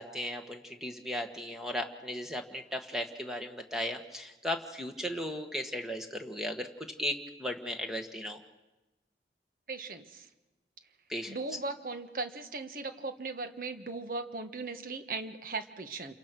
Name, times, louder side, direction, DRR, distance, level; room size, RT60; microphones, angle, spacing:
voice 1, 0.0-6.7 7.0-8.4 11.1-11.4, equal, ahead, 4 dB, 1.5 m, -36 dB
voice 2, 9.7-10.3 11.3-16.1, right 3 dB, 50° right, 8 dB, 1.4 m, -38 dB
28.5 x 23.5 x 6.2 m, 1.1 s
head